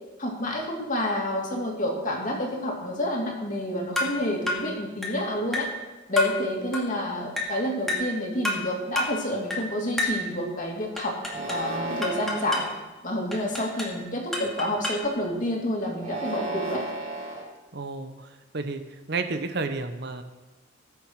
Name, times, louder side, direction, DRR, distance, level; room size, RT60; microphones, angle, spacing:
voice 1, 0.2-5.7 6.1-11.2 11.5-12.6 13.0-16.8, left 1 dB, 40° left, -1 dB, 2.6 m, -29 dB
sound 1, 4.0-4.2 4.5-4.7 5.0-5.2 5.5-5.8 6.2-6.4 6.7-6.9 7.4-7.6 7.9-8.1 8.4-8.7 9.0-9.2 9.5-9.7 10.0-10.2 11.0-11.7 12.0-12.7 13.3-14.0 14.3-15.1, left 1 dB, ahead, 2.2 m, -29 dB
sound 2, 11.2-12.7 13.4-14.0 15.9-17.4, right 2 dB, 40° right, 5.1 m, -34 dB
voice 2, 17.7-18.3 18.5-18.8 19.1-20.2, right 3 dB, 55° right, 8 dB, 0.9 m, -31 dB
20.0 x 7.3 x 4.8 m, 1.2 s
head